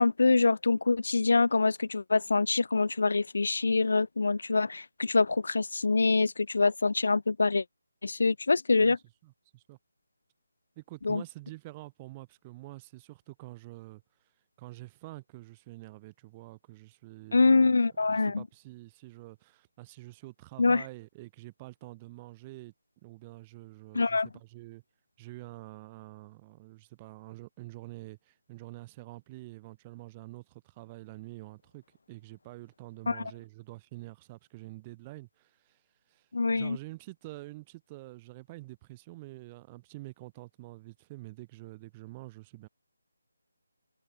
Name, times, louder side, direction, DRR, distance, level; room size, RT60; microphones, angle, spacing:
voice 1, 0.0-7.6 8.0-9.0 11.0-11.2 17.3-18.4 20.6-20.8 23.9-24.3 33.1-33.2 36.3-36.8, left 3 dB, 70° left, 0.9 m, -25 dB
voice 2, 9.2-9.8 10.8-14.0 14.6-22.7 23.0-24.8 25.2-42.7, right 20 dB, 20° right, 2.7 m, -47 dB
figure-of-eight pair, 160°, 0 cm